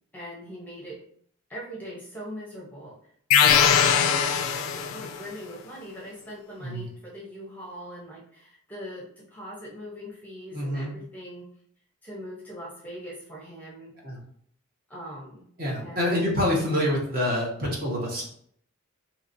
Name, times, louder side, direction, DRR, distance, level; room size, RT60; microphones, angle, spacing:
voice 1, 0.1-1.0 1.5-3.0 3.6-11.5 12.0-14.0 14.9-15.5 15.8-16.2, equal, 10° left, -4 dB, 0.6 m, -41 dB
sound 1, 3.3-5.2, left 7 dB, 90° left, 0.3 m, -21 dB
voice 2, 10.5-10.9 14.0-14.2 15.6-18.2, left 1 dB, 45° right, -2 dB, 0.9 m, -26 dB
2.8 x 2.8 x 2.6 m, 0.63 s
head